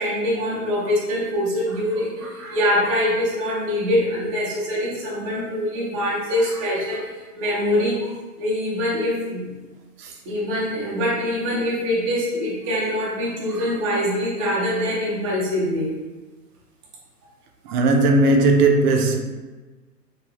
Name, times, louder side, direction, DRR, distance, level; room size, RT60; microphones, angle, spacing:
voice 1, 0.0-9.6 10.3-16.0 17.7-17.8, left 1 dB, 20° right, 0.4 m, -24 dB
voice 2, 17.7-19.2, right 2 dB, 70° right, 0.6 m, -17 dB
3.3 x 2.3 x 2.3 m
hypercardioid pair, 125°, 48 cm